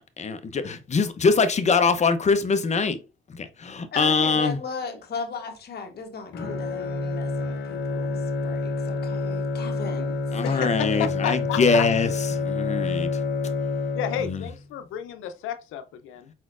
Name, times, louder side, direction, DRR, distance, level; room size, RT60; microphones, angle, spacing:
voice 1, 0.2-3.0 3.3-4.6 10.3-13.1 14.2-14.4, left 4 dB, 35° left, 0.7 m, -23 dB
voice 2, 3.9-10.2 10.4-10.6, left 5 dB, 55° left, 1.2 m, -37 dB
Bowed string instrument, 6.3-14.7, left 3 dB, 70° left, 1.0 m, -28 dB
voice 3, 10.4-11.9 13.9-16.3, left 9 dB, 90° left, 0.6 m, -31 dB
4.6 x 4.2 x 2.5 m
cardioid pair, 90°, 20 cm